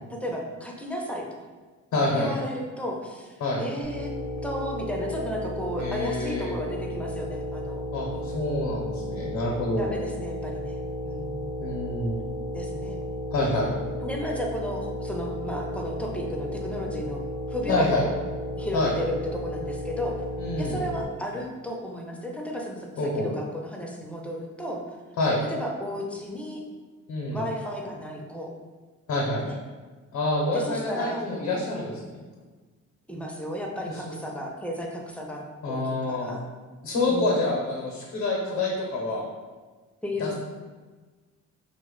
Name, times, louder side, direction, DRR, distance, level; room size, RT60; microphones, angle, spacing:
voice 1, 0.1-1.2 2.1-4.1 4.4-7.8 8.1-8.4 9.8-11.5 12.5-13.0 14.0-17.2 17.5-18.1 18.5-20.2 20.6-24.8 25.5-26.6 27.3-28.5 29.4-29.6 30.5-31.2 33.1-36.4 37.1-37.2 40.0-40.3, equal, 5° left, 0 dB, 0.4 m, -34 dB
voice 2, 1.9-2.3 3.4-3.6 5.8-6.5 7.9-9.9 11.6-12.2 13.3-13.7 17.7-18.0 18.7-18.9 20.4-20.8 23.0-23.3 25.2-25.4 27.1-27.4 29.1-29.4 30.1-32.2 35.6-36.3 36.8-39.3 40.2-40.3, left 2 dB, 80° left, -3 dB, 0.7 m, -27 dB
sound 1, 3.8-21.0, left 1 dB, 85° right, 0.7 m, -34 dB
2.8 x 2.2 x 3.6 m, 1.4 s
cardioid pair, 90°, 30 cm